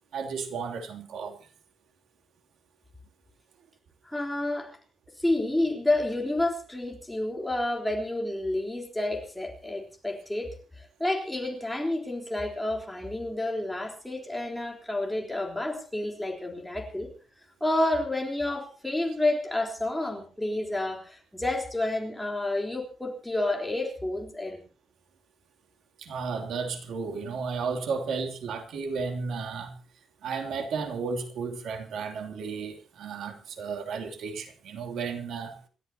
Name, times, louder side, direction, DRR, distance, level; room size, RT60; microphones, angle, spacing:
voice 1, 0.1-1.5 26.0-29.8 30.2-35.6, right 5 dB, 80° right, 3.0 m, -33 dB
voice 2, 4.0-4.8 5.2-17.1 17.6-24.6, left 1 dB, 5° left, 3.7 m, -30 dB
28.0 x 13.5 x 2.9 m
wide cardioid pair, 170°, 0 cm